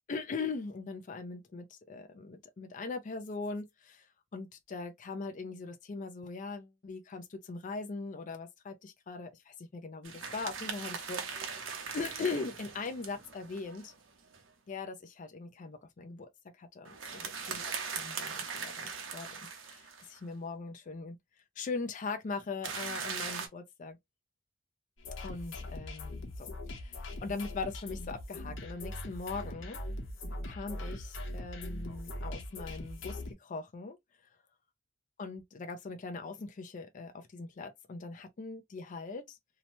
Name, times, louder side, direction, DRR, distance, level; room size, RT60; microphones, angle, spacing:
voice 1, 0.1-13.9 14.7-16.3 16.6-19.3 19.6-21.2 21.6-24.0 25.2-29.8 30.4-34.0 35.2-39.4, left 4 dB, 40° left, 0.4 m, -40 dB
sound 1, 10.0-14.4 16.8-20.2 22.6-23.5, right 6 dB, 90° right, 0.7 m, -40 dB
Club Wubs Loop, 25.0-33.3, left 1 dB, 80° left, 0.8 m, -41 dB
2.8 x 2.1 x 2.8 m
head